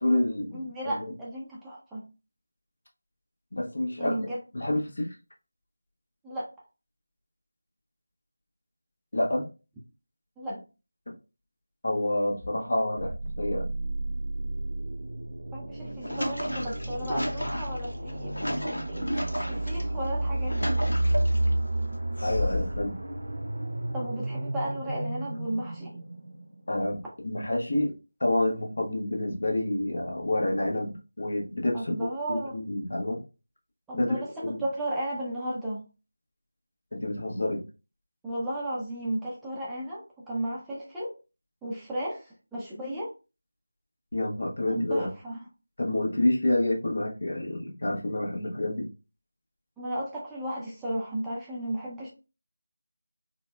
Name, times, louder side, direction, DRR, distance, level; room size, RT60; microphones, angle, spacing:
voice 1, 0.0-0.7 3.5-4.2 4.5-5.1 9.1-9.5 11.8-13.7 22.2-23.0 26.7-27.9 28.2-32.0 32.3-33.2 33.9-34.1 34.4-34.6 36.9-37.6 44.1-45.1 45.8-48.9, left 1 dB, 60° left, 0 dB, 1.0 m, -28 dB
voice 2, 0.5-2.0 4.0-4.4 6.2-6.5 10.4-10.6 15.5-20.8 23.9-25.9 31.7-32.6 33.9-35.8 38.2-41.1 41.6-43.1 44.7-45.4 49.8-52.1, right 1 dB, 5° right, -7 dB, 0.4 m, -34 dB
sound 1, 13.0-26.7, right 1 dB, 65° right, 0.6 m, -31 dB
sound 2, 15.7-19.8 20.3-21.5 22.2-22.9, left 1 dB, 90° left, 0.7 m, -33 dB
4.1 x 2.1 x 2.2 m, 0.31 s
figure-of-eight pair, 170°, 0 cm